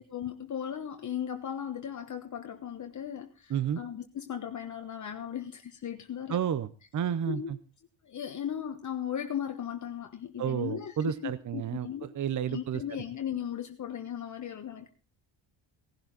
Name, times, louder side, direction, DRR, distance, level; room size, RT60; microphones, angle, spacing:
voice 1, 0.0-6.4 7.3-7.5 8.0-12.1 12.5-14.9, left 9 dB, 40° left, 6 dB, 1.2 m, -37 dB
voice 2, 6.3-7.6 10.4-12.8, right 9 dB, 40° right, 15 dB, 0.8 m, -31 dB
17.5 x 11.5 x 3.9 m, 0.33 s
cardioid pair, 135°, 45 cm